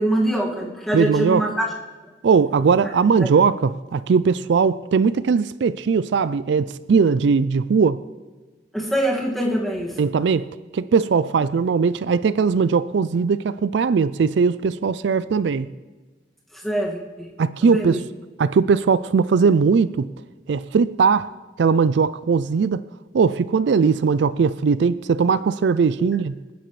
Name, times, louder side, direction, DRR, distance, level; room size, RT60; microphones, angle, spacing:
voice 1, 0.0-1.7 3.2-3.3 8.7-10.0 16.5-17.3 17.6-18.0, right 1 dB, ahead, 1.9 m, -24 dB
voice 2, 0.9-1.4 2.2-8.0 10.0-15.7 17.4-18.0 18.4-20.1 20.5-21.3 21.6-22.8 23.1-26.3, right 5 dB, 75° right, 0.4 m, -19 dB
26.5 x 10.0 x 3.2 m
head